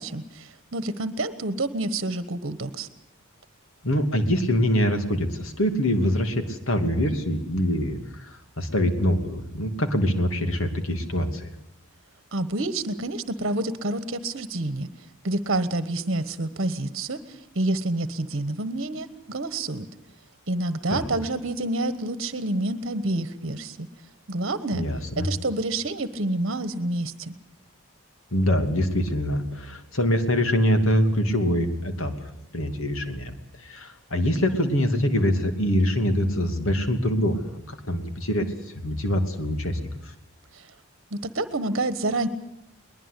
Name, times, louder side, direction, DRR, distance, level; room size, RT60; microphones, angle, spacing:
voice 1, 0.0-2.9 12.3-14.9 15.2-19.9 20.5-23.9 24.3-24.9 25.2-27.3 40.5-40.7 41.1-42.3, right 2 dB, 50° right, 12 dB, 1.3 m, -28 dB
voice 2, 3.8-11.5 20.9-21.0 24.7-25.3 28.3-33.3 33.6-40.1, equal, 65° left, 7 dB, 2.8 m, -24 dB
22.5 x 20.5 x 8.3 m, 0.82 s
head